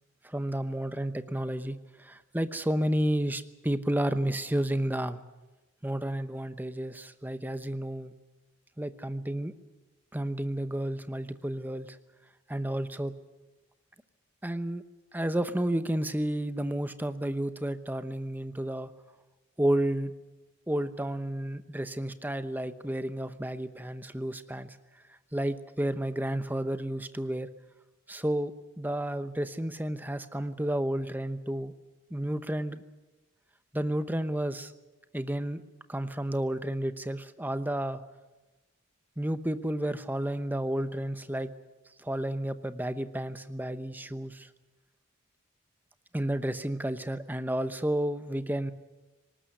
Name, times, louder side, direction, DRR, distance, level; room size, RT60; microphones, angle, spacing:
voice 1, 0.3-5.2 5.8-8.1 8.8-9.5 10.1-11.9 12.5-13.1 14.4-14.8 15.1-18.9 19.6-20.1 20.7-24.7 25.3-27.5 28.1-28.5 28.8-31.7 32.1-32.8 33.7-34.7 35.1-35.6 35.9-38.0 39.2-41.5 42.0-44.5 46.1-48.7, right 1 dB, 10° right, 11 dB, 0.9 m, -31 dB
19.5 x 19.0 x 9.5 m, 1.1 s
head